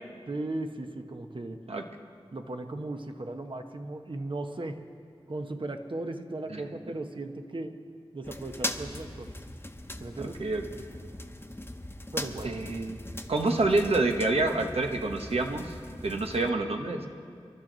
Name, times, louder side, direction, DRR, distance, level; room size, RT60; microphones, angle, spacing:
voice 1, 0.3-1.6 2.3-4.8 5.3-7.8 8.1-9.4 10.0-10.4 12.1-12.6, right 2 dB, 55° right, 6 dB, 1.0 m, -37 dB
sound 1, 8.2-16.5, left 1 dB, 25° left, 0.9 m, -40 dB
voice 2, 10.2-10.6 12.4-13.0 13.3-15.7 16.0-17.1, right 2 dB, 85° right, 3 dB, 1.1 m, -27 dB
26.0 x 12.0 x 4.0 m, 2.3 s
wide cardioid pair, 40°, 10 cm